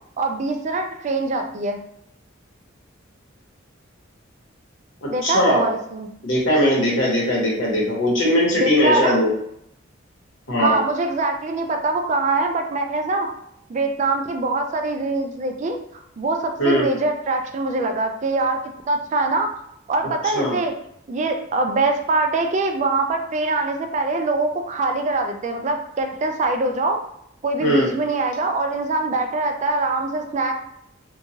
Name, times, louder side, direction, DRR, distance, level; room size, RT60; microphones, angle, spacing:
voice 1, 0.2-1.8 5.1-6.1 8.5-9.2 10.6-13.3 13.7-18.6 18.9-19.5 19.9-20.7 21.1-27.0 27.4-30.5, right 2 dB, 35° right, 5 dB, 0.3 m, -23 dB
voice 2, 5.0-5.7 6.2-9.3 10.5-10.8 16.6-16.9 20.3-20.6 27.6-27.9, left 1 dB, 70° left, -4 dB, 1.0 m, -19 dB
2.9 x 2.3 x 2.7 m, 0.75 s
head